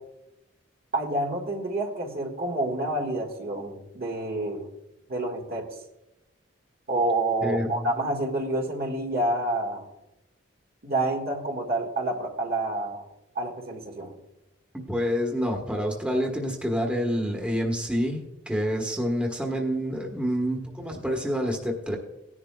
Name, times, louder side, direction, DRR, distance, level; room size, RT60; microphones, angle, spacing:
voice 1, 0.9-4.7 5.1-5.7 6.9-9.9 10.8-13.0 13.3-14.1, right 2 dB, 55° right, 1 dB, 1.6 m, -28 dB
voice 2, 7.4-8.0 14.7-22.0, equal, 5° right, 0 dB, 1.2 m, -28 dB
17.5 x 10.5 x 2.3 m, 0.92 s
head